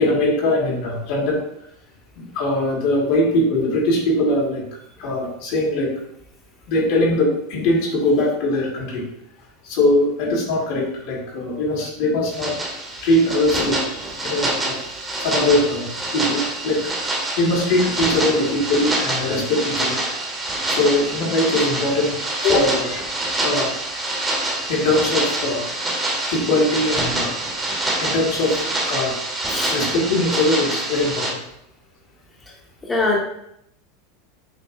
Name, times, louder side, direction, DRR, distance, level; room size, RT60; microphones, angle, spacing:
voice 1, 0.0-1.4 2.1-4.6 5.0-5.9 6.7-9.0 9.6-12.5 13.0-14.0 14.2-14.7 15.2-15.9 16.1-20.0 20.7-22.2 22.4-23.1 23.4-23.7 24.7-25.6 26.3-27.3 28.0-29.1 29.7-31.4, left 1 dB, 65° left, -1 dB, 1.4 m, -21 dB
sound 1, 12.3-31.3, right 1 dB, 20° right, 1.2 m, -26 dB
voice 2, 29.5-29.7 32.9-33.2, left 2 dB, 20° left, -2 dB, 0.9 m, -21 dB
6.8 x 2.7 x 2.4 m, 0.74 s
hypercardioid pair, 90°, 0 cm